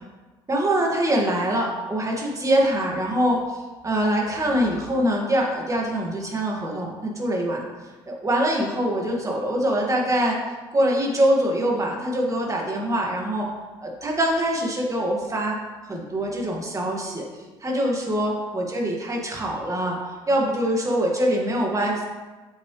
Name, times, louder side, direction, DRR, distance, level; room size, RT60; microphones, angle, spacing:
voice 1, 0.5-7.6 8.1-10.4 10.7-13.5 13.8-15.6 15.8-20.0 20.3-22.0, right 1 dB, 25° right, -1 dB, 2.5 m, -24 dB
7.6 x 7.4 x 3.5 m, 1.3 s
hypercardioid pair, 55°, 14 cm